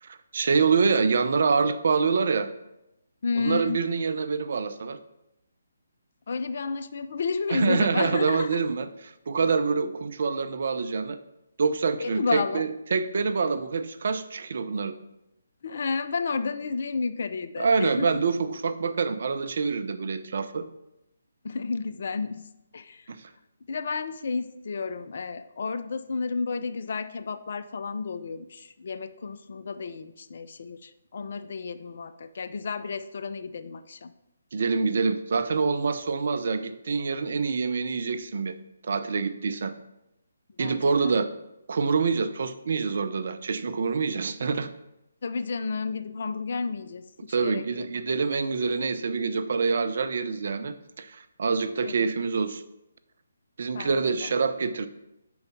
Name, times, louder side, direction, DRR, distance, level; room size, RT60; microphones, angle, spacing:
voice 1, 0.0-2.5 3.4-5.0 7.5-11.2 11.6-14.9 17.6-20.7 23.1-23.2 34.5-38.6 38.9-39.7 40.6-41.3 41.7-44.7 47.3-52.6 53.6-54.9, right 5 dB, 50° right, 10 dB, 0.5 m, -26 dB
voice 2, 3.2-3.9 6.3-8.6 12.0-12.7 15.6-18.2 21.4-22.5 22.7-23.1 23.7-34.1 40.6-41.1 45.2-47.9 51.8-52.1 53.7-54.3, left 4 dB, 50° left, 10 dB, 0.4 m, -31 dB
5.4 x 3.9 x 5.9 m, 0.87 s
figure-of-eight pair, 145°, 0 cm